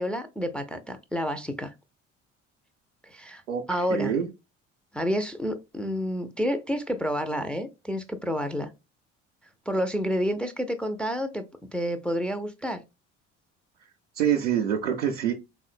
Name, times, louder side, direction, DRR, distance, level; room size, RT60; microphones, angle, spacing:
voice 1, 0.0-1.7 3.1-3.4 3.7-4.1 4.9-8.7 9.7-11.4 11.7-12.8, equal, 5° left, 0.4 m, -29 dB
voice 2, 3.5-4.3 14.2-15.3, right 9 dB, 80° right, 0.5 m, -26 dB
3.6 x 2.2 x 2.4 m
figure-of-eight pair, 55°, 37 cm